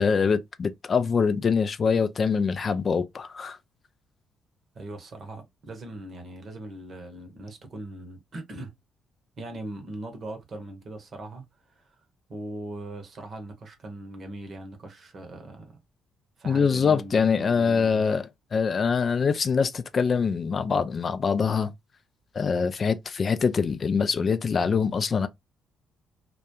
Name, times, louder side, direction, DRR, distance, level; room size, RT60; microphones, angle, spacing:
voice 1, 0.0-3.6 16.4-21.7 22.3-25.3, left 5 dB, 45° left, 0.3 m, -24 dB
voice 2, 4.7-8.7 9.4-11.4 11.7-11.9 12.3-15.7 16.4-18.1, right 2 dB, 50° right, 0.8 m, -40 dB
2.3 x 2.2 x 2.9 m
figure-of-eight pair, 45°, 0 cm